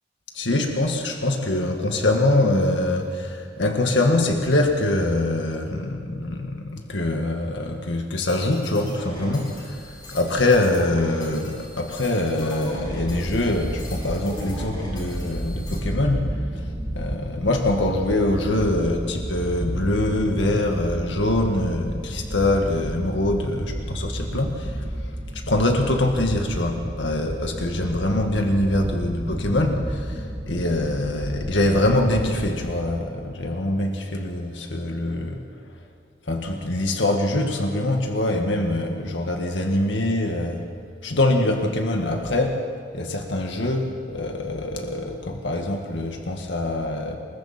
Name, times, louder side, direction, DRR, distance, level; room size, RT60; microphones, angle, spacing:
voice 1, 0.3-24.8 25.3-35.4 36.3-40.7 41.0-42.6 42.9-47.2, left 1 dB, 85° left, 2 dB, 1.9 m, -24 dB
sound 1, 8.3-15.8, equal, 25° left, 7.4 m, -39 dB
sound 2, 12.7-32.5, equal, 15° right, 7.0 m, -32 dB
27.5 x 22.0 x 4.4 m, 2.4 s
head